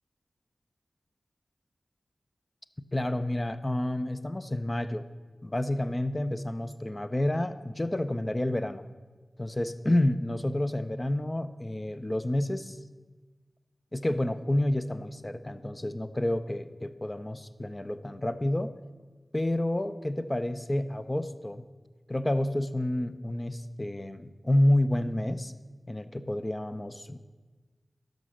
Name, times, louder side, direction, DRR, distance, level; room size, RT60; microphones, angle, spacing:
voice 1, 2.9-5.1 5.4-8.9 9.4-12.8 13.9-18.7 19.3-21.6 22.1-25.5 25.9-27.2, left 1 dB, 25° left, 12 dB, 0.6 m, -29 dB
12.5 x 5.3 x 6.4 m, 1.3 s
wide cardioid pair, 65°, 0 cm